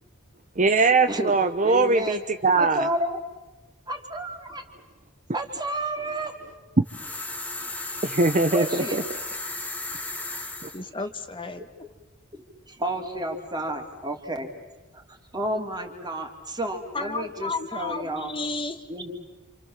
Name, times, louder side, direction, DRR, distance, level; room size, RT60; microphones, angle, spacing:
voice 1, 0.6-2.9 6.8-6.9 8.0-9.0 10.6-10.7, right 3 dB, 35° right, 8 dB, 0.9 m, -21 dB
voice 2, 1.6-2.2 2.6-3.2 3.9-4.6 5.3-6.7 8.1-8.2 8.5-9.0 12.7-14.5 14.9-18.3 18.9-19.1, right 1 dB, 20° right, 4 dB, 3.3 m, -31 dB
sound 1, 6.9-10.8, left 2 dB, 5° left, 2.0 m, -34 dB
voice 3, 10.7-11.6 16.9-18.8, left 3 dB, 25° left, 8 dB, 1.4 m, -32 dB
29.0 x 28.0 x 7.4 m, 1.1 s
head